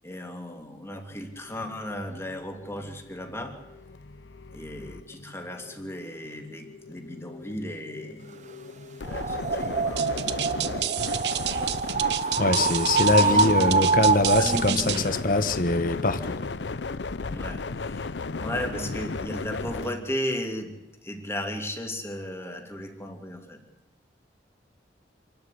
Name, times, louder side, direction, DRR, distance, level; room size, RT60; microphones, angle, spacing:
voice 1, 0.0-3.6 4.5-8.3 9.0-10.1 10.6-11.0 11.3-11.9 12.2-12.4 13.2-13.8 14.4-15.1 17.2-18.1 18.4-23.6, left 1 dB, 15° left, 3 dB, 2.8 m, -35 dB
sound 1, 1.1-20.0, left 3 dB, 80° left, 0.7 m, -36 dB
sound 2, 9.0-14.8, right 4 dB, 45° right, 0.9 m, -25 dB
sound 3, 10.0-15.1, right 12 dB, 70° right, 1.0 m, -30 dB
voice 2, 12.4-16.5, left 2 dB, 55° left, 12 dB, 1.3 m, -23 dB
27.5 x 12.5 x 8.3 m, 0.97 s
head